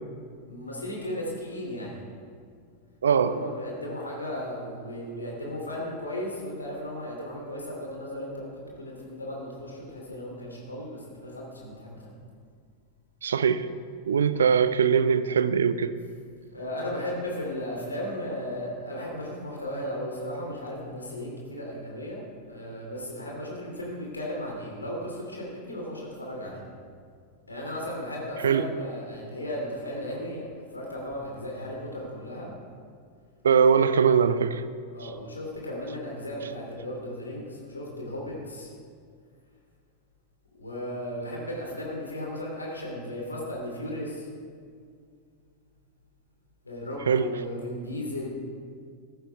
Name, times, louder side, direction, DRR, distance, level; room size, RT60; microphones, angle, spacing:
voice 1, 0.5-2.0 3.1-12.1 16.5-22.2 22.5-26.7 27.5-32.5 34.9-38.7 40.6-44.3 46.6-48.3, left 1 dB, 80° left, -2 dB, 2.9 m, -35 dB
voice 2, 3.0-3.3 13.2-13.7 14.1-15.9 28.4-28.7 33.4-34.6 47.1-47.3, right 7 dB, 65° right, 14 dB, 0.6 m, -21 dB
15.0 x 14.5 x 3.5 m, 2.2 s
figure-of-eight pair, 90°, 0 cm